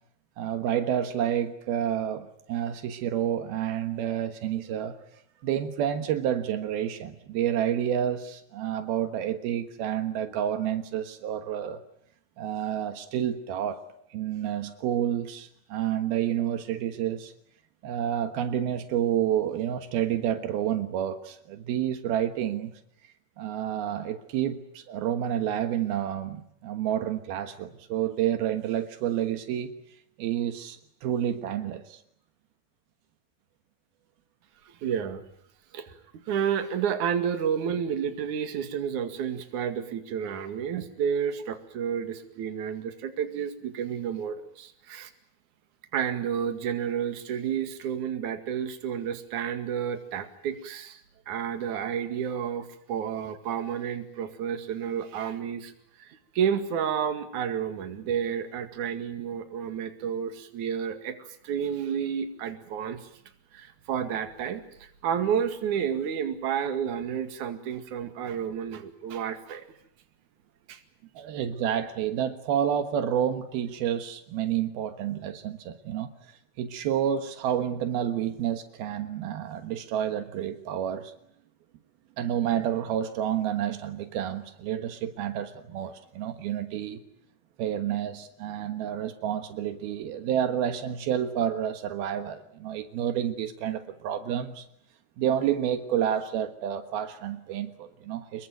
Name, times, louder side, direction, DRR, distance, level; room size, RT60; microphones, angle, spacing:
voice 1, 0.4-5.0 5.4-11.8 12.4-13.8 14.1-17.3 17.8-22.7 23.4-29.8 30.2-32.0 71.2-81.1 82.2-87.0 87.6-94.7 95.2-98.5, right 10 dB, 80° right, 9 dB, 3.3 m, -29 dB
voice 2, 34.7-35.2 35.7-35.9 36.3-45.1 45.9-51.0 51.3-55.7 56.0-63.1 63.5-69.7 70.7-70.8, right 8 dB, 55° right, 8 dB, 3.3 m, -31 dB
26.5 x 22.5 x 9.3 m, 0.69 s
omnidirectional pair, 4.3 m